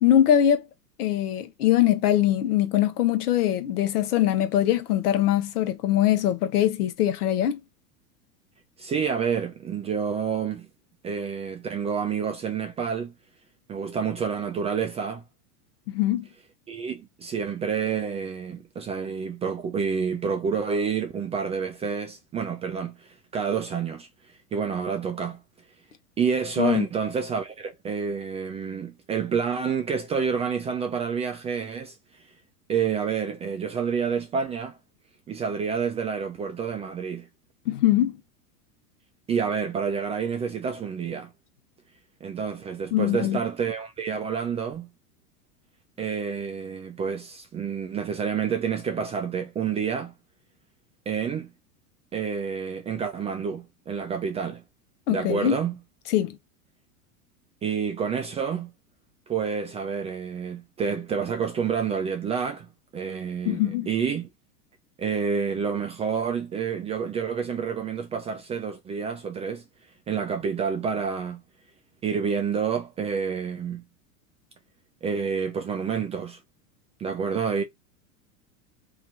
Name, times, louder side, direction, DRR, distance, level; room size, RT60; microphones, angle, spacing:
voice 1, 0.0-0.6 1.0-7.6 15.9-16.3 26.6-26.9 37.7-38.2 42.9-43.4 55.1-55.6 56.1-56.4 63.5-63.9, left 12 dB, 80° left, 0.9 m, -22 dB
voice 2, 8.8-10.7 11.0-13.1 13.7-15.2 16.7-24.1 24.5-25.4 26.2-32.0 32.7-34.8 35.3-37.3 39.3-41.3 42.2-44.9 46.0-50.1 51.1-51.5 52.1-54.6 55.1-55.8 57.6-58.7 59.3-64.3 65.0-69.6 70.1-71.4 72.0-73.8 75.0-76.4 77.0-77.6, right 6 dB, 15° right, 0.3 m, -28 dB
2.9 x 2.3 x 4.0 m
hypercardioid pair, 110°, 45 cm